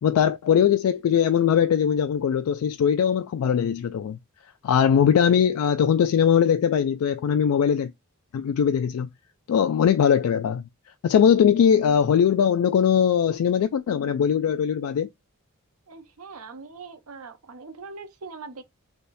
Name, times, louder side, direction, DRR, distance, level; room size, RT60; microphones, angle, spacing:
voice 1, 0.0-4.2 4.6-7.9 8.3-9.1 9.5-10.6 11.0-15.1, left 8 dB, 85° left, 0.3 m, -20 dB
voice 2, 15.9-18.6, right 4 dB, 90° right, 0.8 m, -41 dB
3.4 x 2.6 x 4.1 m
head